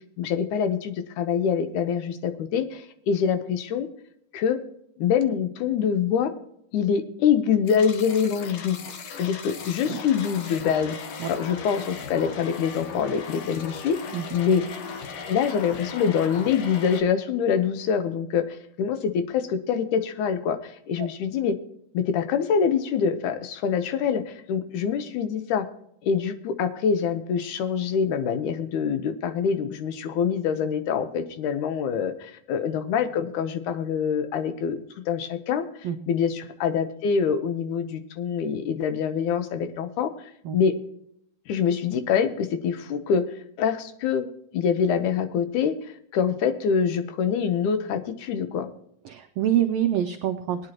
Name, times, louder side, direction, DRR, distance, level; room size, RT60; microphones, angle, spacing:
voice 1, 0.2-3.9 4.3-4.6 5.0-6.3 6.7-8.8 9.2-11.0 11.3-14.0 14.3-14.6 15.3-21.6 21.9-25.7 26.0-34.8 35.1-40.7 41.5-44.3 44.5-48.7, left 7 dB, 90° left, 9 dB, 2.4 m, -25 dB
sound 1, 7.7-17.0, left 5 dB, 65° left, 2.1 m, -37 dB
voice 2, 49.0-50.7, right 10 dB, 85° right, 8 dB, 1.3 m, -25 dB
19.5 x 9.7 x 2.9 m, 0.73 s
omnidirectional pair, 3.4 m